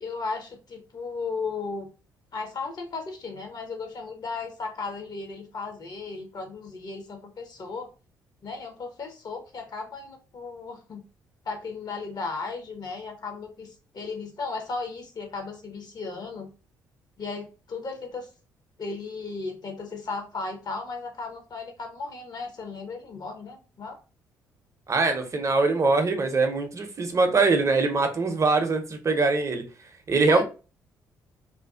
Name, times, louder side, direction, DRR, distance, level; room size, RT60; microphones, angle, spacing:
voice 1, 0.0-1.9 2.3-7.9 8.4-11.0 11.4-16.5 17.2-18.3 18.8-24.0 30.3-30.4, left 4 dB, 45° left, 0.7 m, -35 dB
voice 2, 24.9-29.6 30.1-30.4, right 3 dB, 35° right, 0.6 m, -23 dB
2.5 x 2.2 x 2.2 m
hypercardioid pair, 45°, 9 cm